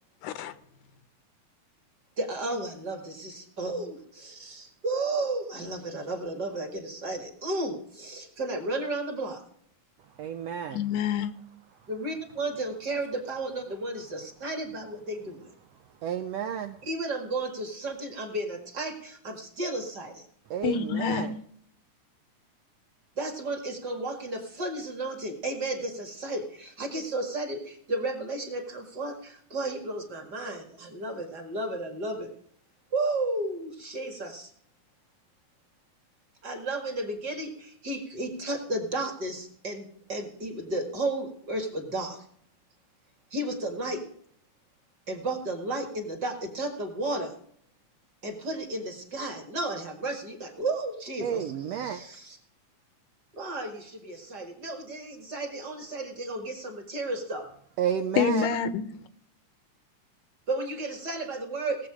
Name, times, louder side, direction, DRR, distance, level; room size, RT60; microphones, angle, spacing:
voice 1, 0.2-0.5 10.7-11.3 20.6-21.3 58.2-58.8, left 7 dB, 80° left, 2.3 m, -27 dB
voice 2, 2.2-9.4 11.9-15.5 16.8-20.3 23.2-32.3 32.9-34.5 36.4-42.2 43.3-44.0 45.1-47.3 48.2-52.4 53.3-57.5 58.4-58.5 60.5-61.9, right 2 dB, 40° right, 2.0 m, -33 dB
voice 3, 10.2-10.8 16.0-16.8 20.5-21.3 51.2-52.0 57.8-58.5, right 8 dB, 80° right, 1.5 m, -31 dB
18.5 x 7.7 x 4.9 m
omnidirectional pair, 3.6 m